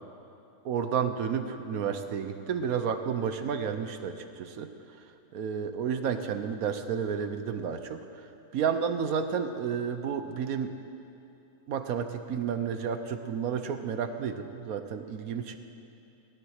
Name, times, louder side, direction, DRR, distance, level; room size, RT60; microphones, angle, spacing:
voice 1, 0.6-4.7 5.0-5.1 5.3-10.7 11.7-15.6, right 7 dB, 70° right, 8 dB, 1.2 m, -31 dB
16.5 x 12.5 x 6.5 m, 2.8 s
omnidirectional pair, 1.6 m